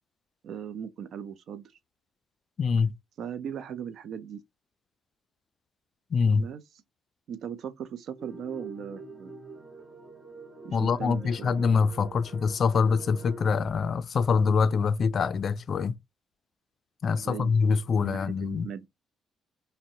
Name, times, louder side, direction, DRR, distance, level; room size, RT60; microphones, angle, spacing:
voice 1, 0.4-1.6 3.2-4.4 6.3-6.6 7.3-9.3 10.6-11.6 17.1-17.5 18.0-18.9, right 8 dB, 70° right, 0.5 m, -38 dB
voice 2, 2.6-2.9 6.1-6.5 10.7-16.0 17.0-18.7, left 5 dB, 50° left, 0.3 m, -25 dB
sound 1, 8.2-13.5, right 2 dB, 25° right, 0.9 m, -45 dB
2.7 x 2.1 x 3.6 m
cardioid pair, 90°, 0 cm